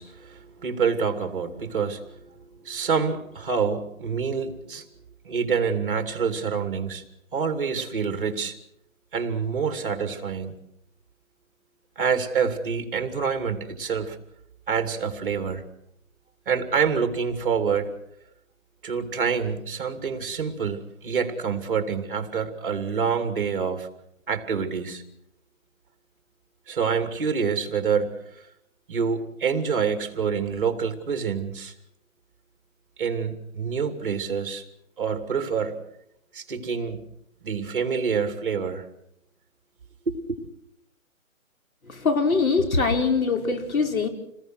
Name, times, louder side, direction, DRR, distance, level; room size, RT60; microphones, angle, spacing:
voice 1, 0.0-2.2 2.6-4.9 5.2-7.0 7.3-8.6 9.1-10.5 12.0-14.2 14.7-15.6 16.5-17.9 18.8-23.9 24.3-25.0 26.7-28.1 28.9-31.7 33.0-34.6 35.0-35.8 36.3-37.0 37.4-38.9 40.1-40.5, right 6 dB, 40° right, 8 dB, 2.7 m, -27 dB
voice 2, 41.9-44.1, left 4 dB, 80° left, 6 dB, 5.1 m, -22 dB
28.0 x 20.0 x 6.4 m, 0.79 s
hypercardioid pair, 180°, 41 cm